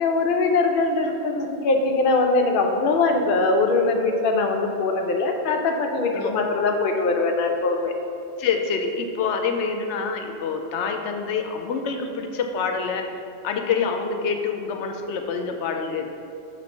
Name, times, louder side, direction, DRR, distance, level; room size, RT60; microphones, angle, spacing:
voice 1, 0.0-7.9, left 3 dB, 60° left, 3 dB, 0.7 m, -22 dB
voice 2, 8.4-13.0 13.4-16.1, left 5 dB, 85° left, 4 dB, 0.9 m, -26 dB
6.0 x 3.2 x 5.3 m, 2.7 s
omnidirectional pair, 1.2 m